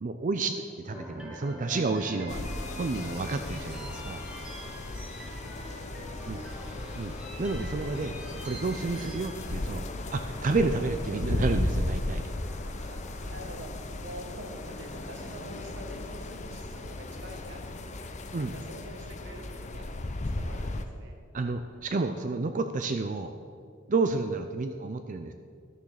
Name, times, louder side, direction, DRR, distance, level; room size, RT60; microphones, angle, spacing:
voice 1, 0.0-2.4 2.7-4.2 6.2-6.4 6.9-8.1 8.4-9.8 10.1-12.3 18.3-18.5 21.3-23.3 23.9-25.3, right 3 dB, 40° right, 8 dB, 0.4 m, -30 dB
sound 1, 0.9-17.1, equal, 5° right, 1.6 m, -46 dB
sound 2, 2.3-20.9, left 2 dB, 35° left, 0.6 m, -36 dB
voice 2, 5.2-6.8 12.8-13.7 14.0-19.9 20.2-21.2, right 1 dB, 60° right, 2 dB, 1.6 m, -47 dB
11.5 x 7.0 x 6.4 m, 2.2 s
head